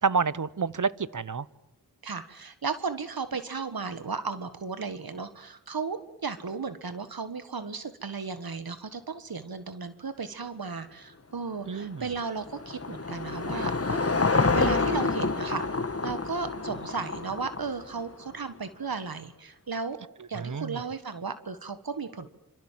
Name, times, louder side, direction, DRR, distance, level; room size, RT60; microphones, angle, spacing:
voice 1, 0.0-1.5 11.7-12.1 20.3-20.8, right 5 dB, 55° right, 18 dB, 1.0 m, -28 dB
voice 2, 2.0-20.0 20.3-22.3, right 5 dB, 75° right, 11 dB, 1.7 m, -35 dB
Car passing by / Engine, 11.7-18.2, left 3 dB, 40° left, 1.7 m, -28 dB
27.0 x 26.0 x 7.5 m, 0.81 s
wide cardioid pair, 55°, 36 cm